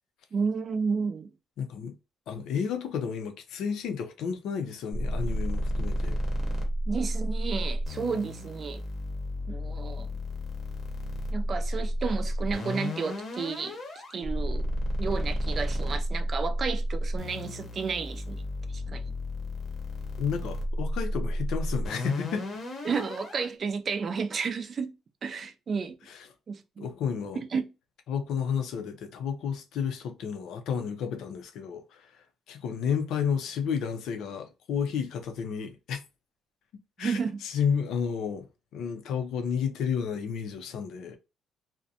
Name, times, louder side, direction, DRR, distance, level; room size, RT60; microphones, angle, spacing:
voice 1, 0.3-1.3 6.9-8.8 9.5-10.1 11.3-13.8 14.1-14.6 15.0-18.4 18.7-19.0 22.8-24.9 25.2-25.9 26.5-26.9 27.5-27.6 37.0-37.4, right 5 dB, 35° right, 0.4 m, -32 dB
voice 2, 1.6-1.9 2.3-6.2 20.2-22.5 26.1-26.3 26.8-27.4 28.1-36.0 37.0-38.5 38.7-41.2, left 7 dB, 75° left, 0.5 m, -31 dB
sound 1, 4.9-23.5, equal, 40° left, 0.8 m, -32 dB
2.5 x 2.1 x 2.6 m
cardioid pair, 140°, 0 cm